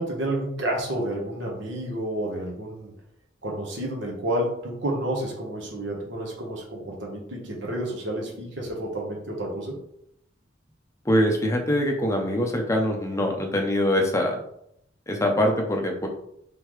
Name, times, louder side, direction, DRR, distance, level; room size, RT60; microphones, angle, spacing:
voice 1, 0.0-2.9 3.4-9.8, right 1 dB, 70° right, -1 dB, 1.1 m, -30 dB
voice 2, 11.1-14.4 15.1-16.1, equal, 15° left, 2 dB, 0.6 m, -23 dB
3.7 x 3.3 x 3.1 m, 0.74 s
head